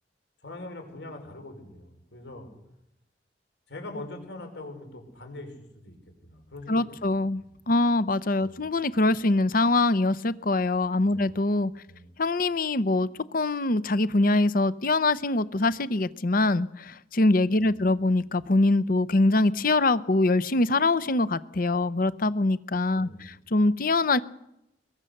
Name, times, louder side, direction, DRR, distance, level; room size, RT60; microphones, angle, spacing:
voice 1, 0.4-2.5 3.7-5.5 5.8-6.0 6.2-7.1 7.4-7.6 8.4-8.7 11.0-11.3 11.9-12.1 17.6-17.8 23.0-23.3, left 2 dB, 85° left, 5 dB, 5.2 m, -42 dB
voice 2, 6.7-11.7 12.2-24.2, left 2 dB, 55° left, 16 dB, 0.8 m, -24 dB
22.5 x 20.5 x 6.6 m, 0.85 s
head